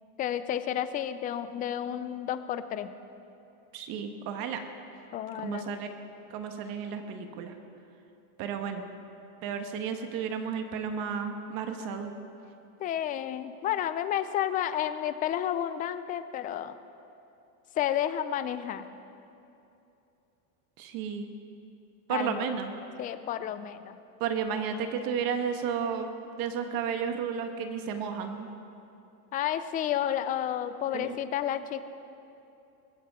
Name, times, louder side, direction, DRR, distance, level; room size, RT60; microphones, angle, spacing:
voice 1, 0.2-2.9 5.1-5.7 12.8-16.8 17.7-18.9 22.1-22.4 23.0-24.0 29.3-31.8, left 10 dB, 20° left, 12 dB, 0.3 m, -31 dB
voice 2, 3.7-4.6 5.4-5.9 6.3-7.5 8.4-8.8 9.4-12.1 20.8-21.3 22.1-22.7 24.2-28.5 30.9-31.2, right 7 dB, 50° right, 6 dB, 1.4 m, -33 dB
21.5 x 15.0 x 3.7 m, 2.8 s
supercardioid pair, 135°, 45 cm